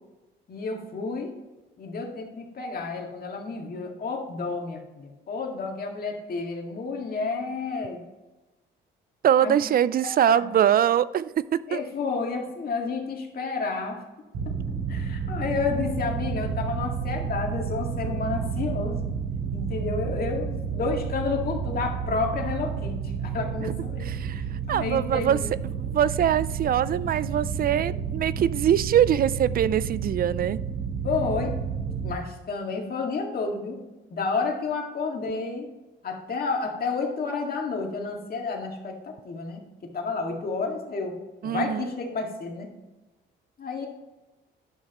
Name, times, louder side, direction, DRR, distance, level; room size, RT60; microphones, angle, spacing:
voice 1, 0.5-1.3 1.8-8.0 9.4-9.6 10.3-10.5 11.7-14.0 14.9-19.1 19.5-24.1 24.7-25.5 31.0-31.5 32.0-33.8 34.1-35.7 36.0-39.6 39.9-41.1 41.4-42.7 43.6-43.9, left 4 dB, 50° left, 2.0 m, -30 dB
voice 2, 9.2-11.8 23.6-24.4 24.7-25.4 25.6-30.6 41.4-41.9, right 10 dB, 50° right, 0.4 m, -23 dB
sound 1, 14.3-32.1, right 6 dB, 80° right, 2.2 m, -31 dB
10.5 x 6.4 x 3.0 m
cardioid pair, 90°, 20 cm